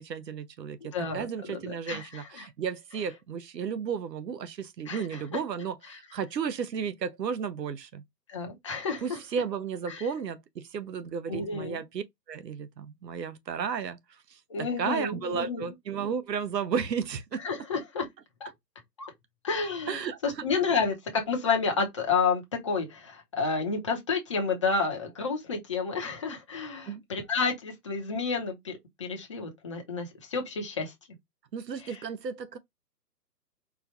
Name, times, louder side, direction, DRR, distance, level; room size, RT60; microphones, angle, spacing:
voice 1, 0.0-8.0 9.0-14.0 14.3-17.4 19.9-20.4 26.9-27.0 31.5-32.6, right 6 dB, 80° right, 0.8 m, -33 dB
voice 2, 0.8-2.5 4.9-5.4 5.9-6.0 8.3-9.2 9.9-10.1 11.3-11.8 14.5-15.7 17.4-18.1 18.4-18.5 19.0-19.1 19.4-30.9 31.8-32.0, left 5 dB, 20° left, 0.6 m, -30 dB
4.4 x 2.2 x 2.8 m
hypercardioid pair, 150°, 50 cm